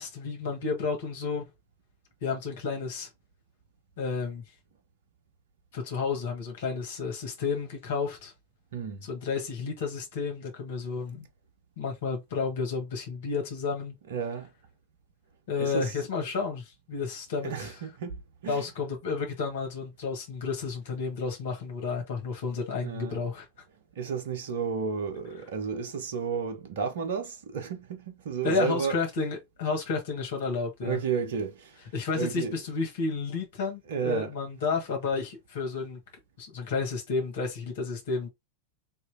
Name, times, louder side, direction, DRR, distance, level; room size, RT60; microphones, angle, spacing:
voice 1, 0.0-1.4 2.2-3.1 4.0-4.4 5.7-8.3 9.1-11.3 11.8-13.9 15.5-17.7 18.5-23.5 28.4-31.0 31.9-36.0 36.4-38.3, left 4 dB, 55° left, 1.6 m, -31 dB
voice 2, 8.7-9.0 14.1-14.5 15.6-15.9 17.4-18.6 22.8-23.2 24.0-29.0 30.8-31.8 32.1-32.6 33.9-34.3, right 6 dB, 60° right, 0.9 m, -32 dB
4.4 x 3.1 x 2.7 m
figure-of-eight pair, 90°, 0 cm